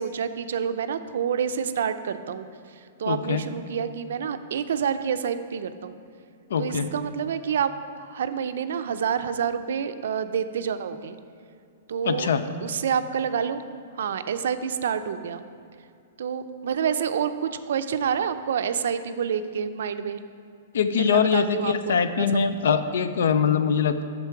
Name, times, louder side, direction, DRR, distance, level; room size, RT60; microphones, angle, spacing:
voice 1, 0.0-2.5 3.0-6.0 6.6-7.7 8.0-11.2 11.9-12.3 12.6-13.6 14.0-15.4 16.2-20.2 21.0-22.5, right 7 dB, 75° right, 10 dB, 0.4 m, -28 dB
voice 2, 3.1-3.4 6.5-6.9 12.0-12.5 20.7-24.0, left 6 dB, 80° left, 11 dB, 0.5 m, -23 dB
8.3 x 6.7 x 4.6 m, 2.4 s
hypercardioid pair, 160°, 0 cm